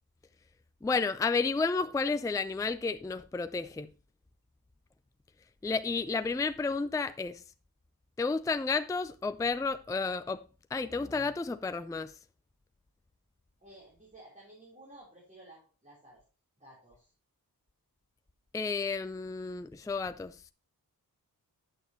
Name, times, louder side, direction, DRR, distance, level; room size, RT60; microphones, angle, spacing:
voice 1, 0.8-3.9 5.6-7.4 8.2-10.4 10.7-12.1 18.5-20.4, left 4 dB, 10° left, 0.4 m, -31 dB
voice 2, 13.6-16.2 16.6-17.1, right 1 dB, 20° right, 4.1 m, -54 dB
9.3 x 7.9 x 3.1 m
wide cardioid pair, 110°, 37 cm